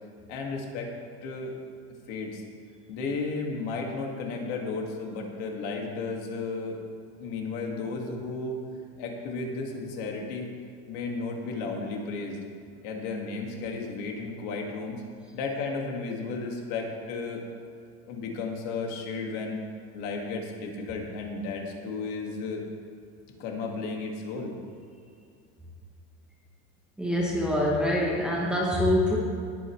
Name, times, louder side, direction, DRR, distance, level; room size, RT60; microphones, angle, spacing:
voice 1, 0.3-0.9 1.2-1.5 2.1-2.4 2.9-6.8 7.2-8.6 9.0-10.5 10.9-12.4 12.8-15.0 15.3-17.4 18.1-19.6 19.9-22.7 23.4-24.5, left 3 dB, 50° left, 1 dB, 2.1 m, -33 dB
voice 2, 27.0-29.2, left 1 dB, 5° right, -5 dB, 0.9 m, -25 dB
19.5 x 8.8 x 3.2 m, 2.5 s
cardioid pair, 180°, 33 cm